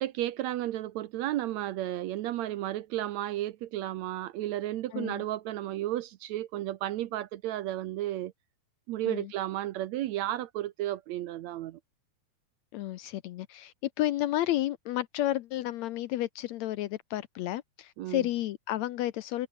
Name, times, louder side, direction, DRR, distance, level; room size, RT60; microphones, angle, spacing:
voice 1, 0.0-8.3 8.9-11.8 18.0-18.2, right 14 dB, 70° right, 1.8 m, -33 dB
voice 2, 4.9-5.2 9.1-9.3 12.7-19.5, left 14 dB, 75° left, 1.8 m, -31 dB
omnidirectional pair, 3.6 m